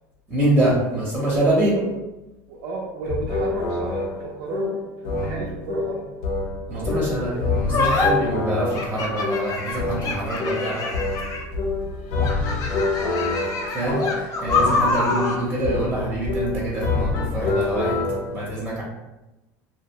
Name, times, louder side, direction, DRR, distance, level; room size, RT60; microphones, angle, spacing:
voice 1, 0.3-1.7 6.7-11.0 13.7-18.0 18.3-18.8, right 1 dB, 10° right, -6 dB, 0.7 m, -25 dB
voice 2, 1.2-1.9 2.5-6.0 6.7-7.5, right 3 dB, 75° right, -3 dB, 0.5 m, -33 dB
sound 1, 3.1-18.3, left 3 dB, 80° left, 0.6 m, -27 dB
sound 2, 7.7-8.1 8.7-11.6 12.2-15.4, left 3 dB, 40° left, 0.5 m, -25 dB
2.7 x 2.1 x 2.7 m, 1.0 s
supercardioid pair, 120°, 9 cm